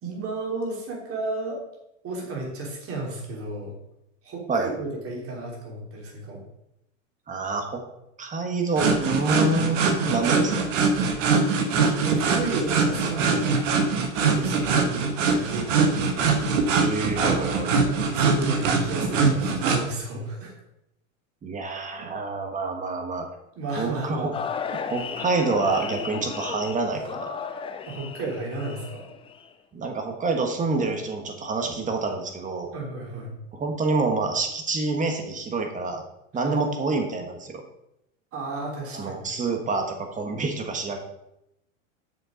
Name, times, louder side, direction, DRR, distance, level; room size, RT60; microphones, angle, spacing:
voice 1, 0.0-1.6 2.0-3.7 4.2-6.4 9.3-9.8 10.2-10.6 12.0-13.6 14.1-16.3 18.1-20.5 22.0-22.1 23.5-24.4 27.9-29.1 32.7-33.3 36.3-36.6 38.3-39.2, right 2 dB, 35° right, -1 dB, 3.3 m, -33 dB
voice 2, 7.3-7.8 8.2-10.5 16.7-17.7 21.4-23.3 23.8-24.3 24.7-27.4 29.7-32.7 33.5-36.0 36.3-37.6 38.9-41.0, right 3 dB, 20° right, 4 dB, 1.5 m, -27 dB
sound 1, 8.7-19.8, right 4 dB, 75° right, 1.6 m, -23 dB
sound 2, 24.3-29.5, left 6 dB, 15° left, 0.5 m, -34 dB
7.3 x 6.5 x 5.2 m, 0.83 s
hypercardioid pair, 120°, 38 cm